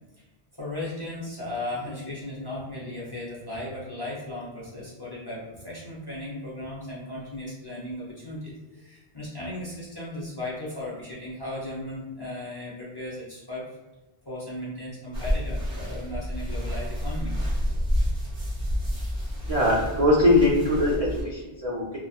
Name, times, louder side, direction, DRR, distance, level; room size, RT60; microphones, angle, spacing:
voice 1, 0.6-13.8 14.3-17.3, left 1 dB, 30° left, -7 dB, 0.6 m, -36 dB
sound 1, 15.1-21.2, equal, 35° right, 0.9 m, -29 dB
voice 2, 19.5-22.0, left 1 dB, 50° right, -5 dB, 0.4 m, -22 dB
2.8 x 2.1 x 2.3 m, 1.2 s
omnidirectional pair, 1.1 m